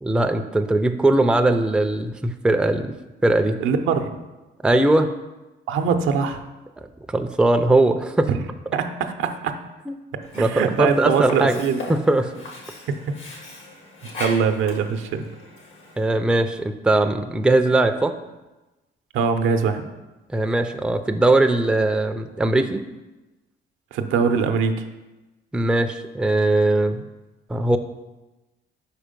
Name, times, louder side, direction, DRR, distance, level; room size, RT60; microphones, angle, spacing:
voice 1, 0.0-2.9 3.2-3.6 4.6-5.1 7.1-8.3 9.9-10.0 10.3-11.6 11.9-12.3 16.0-18.1 20.3-22.8 25.5-27.0 27.5-27.8, right 2 dB, 5° right, 7 dB, 0.4 m, -20 dB
voice 2, 3.6-4.1 5.7-6.4 8.3-8.4 8.7-9.5 10.4-11.8 14.2-15.2 19.1-19.9 23.9-24.8, right 6 dB, 85° right, 7 dB, 0.6 m, -22 dB
Sink (filling or washing), 10.2-16.2, left 2 dB, 75° left, 1.6 m, -39 dB
4.9 x 4.5 x 5.1 m, 1.1 s
cardioid pair, 90°, 20 cm